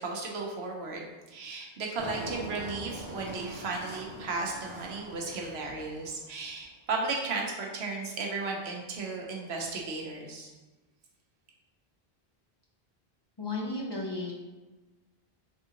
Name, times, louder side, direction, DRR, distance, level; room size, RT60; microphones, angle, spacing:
voice 1, 0.0-10.5, right 3 dB, 90° right, 0 dB, 1.0 m, -35 dB
Engine, 2.0-6.5, right 1 dB, 55° right, 1.0 m, -43 dB
voice 2, 13.4-14.3, left 2 dB, 40° left, -3 dB, 0.4 m, -33 dB
3.6 x 3.5 x 2.8 m, 1.2 s
omnidirectional pair, 1.0 m